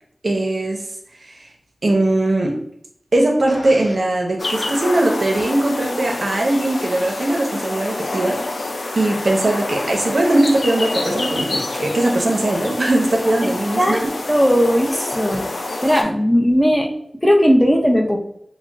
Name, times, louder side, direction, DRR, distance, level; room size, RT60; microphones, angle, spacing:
voice 1, 0.2-0.8 1.2-1.4 1.8-2.6 3.1-8.4 8.9-14.0, right 1 dB, 65° right, 1 dB, 0.6 m, -19 dB
Fart, 3.5-4.0 5.3-5.5, equal, 30° left, 0.9 m, -36 dB
sound 1, 4.4-16.0, left 2 dB, 75° left, 0.4 m, -27 dB
voice 2, 14.3-15.5 15.8-18.2, equal, 10° left, 1 dB, 0.5 m, -17 dB
2.4 x 2.0 x 3.8 m, 0.70 s
wide cardioid pair, 50°, 0 cm